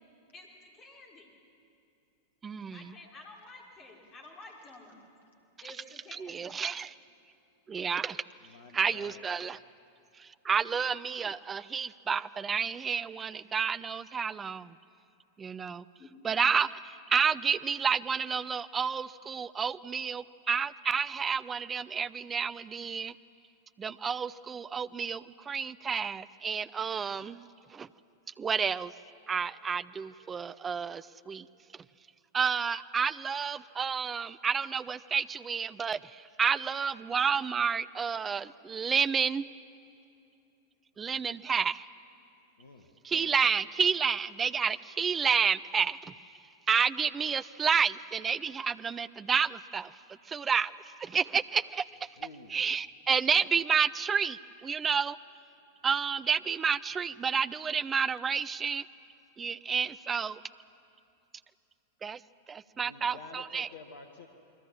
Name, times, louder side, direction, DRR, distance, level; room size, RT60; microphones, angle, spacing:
voice 1, 0.3-1.3 2.7-5.1 5.6-6.5 10.7-10.8 16.0-16.1, left 2 dB, 25° left, 0 dB, 4.8 m, -51 dB
voice 2, 2.4-2.9 5.6-5.7 6.2-6.9 7.7-8.2 8.7-9.6 10.2-14.8 15.4-15.9 16.2-23.1 23.8-27.9 28.4-28.9 29.3-31.5 32.3-39.5 41.0-41.8 43.0-46.1 46.7-49.9 50.3-50.7 51.0-51.8 52.5-55.2 55.8-58.8 59.4-60.4 62.0-62.2 62.5-63.7, right 6 dB, 20° right, 16 dB, 0.6 m, -30 dB
voice 3, 8.4-9.2 42.6-42.9 52.1-52.6 62.8-64.3, left 4 dB, 65° left, 5 dB, 1.6 m, -50 dB
29.0 x 22.0 x 7.5 m, 2.8 s
figure-of-eight pair, 90°, 0 cm